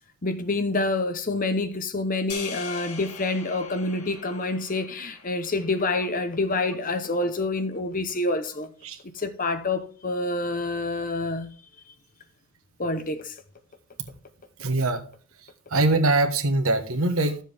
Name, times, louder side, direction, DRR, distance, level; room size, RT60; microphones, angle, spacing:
voice 1, 0.2-8.7 9.1-11.5 12.8-13.3, left 2 dB, 40° left, 1.0 m, -27 dB
sound 1, 2.3-6.7, left 5 dB, 90° left, 2.0 m, -41 dB
voice 2, 14.6-15.0 15.7-17.4, right 2 dB, 70° right, 1.3 m, -22 dB
13.0 x 7.4 x 3.5 m
head